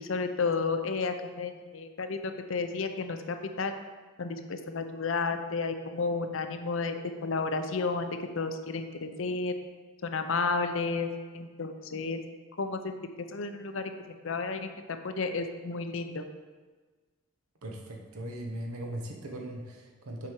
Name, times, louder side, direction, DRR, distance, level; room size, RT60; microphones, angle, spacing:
voice 1, 0.0-3.7 4.2-8.1 8.4-9.5 10.0-12.2 12.6-12.9 13.3-14.7 15.0-16.2, left 4 dB, 60° left, 8 dB, 0.6 m, -32 dB
voice 2, 17.6-20.3, right 1 dB, 80° right, 1 dB, 1.1 m, -39 dB
7.3 x 5.1 x 4.6 m, 1.4 s
head